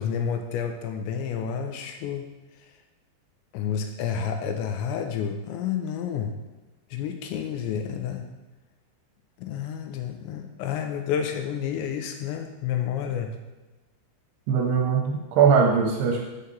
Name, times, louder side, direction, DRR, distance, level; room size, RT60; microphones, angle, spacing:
voice 1, 0.0-2.3 3.5-6.3 6.9-8.3 9.4-13.4, left 8 dB, 80° left, 5 dB, 2.9 m, -30 dB
voice 2, 14.5-16.3, right 6 dB, 80° right, 1 dB, 2.6 m, -21 dB
6.5 x 5.8 x 6.9 m, 1.1 s
omnidirectional pair, 5.4 m